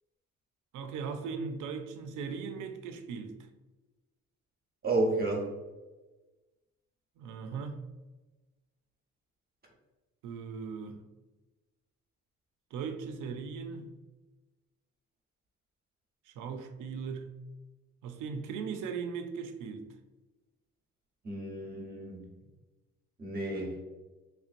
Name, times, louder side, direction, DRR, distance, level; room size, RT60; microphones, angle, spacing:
voice 1, 0.7-3.3 7.2-7.8 10.2-11.0 12.7-13.9 16.3-17.4 18.0-19.9, right 5 dB, 85° right, 0.5 m, -38 dB
voice 2, 4.8-5.5 21.2-22.2 23.2-23.8, right 2 dB, 30° right, 1.0 m, -31 dB
3.2 x 3.0 x 2.5 m
cardioid pair, 90°, 30 cm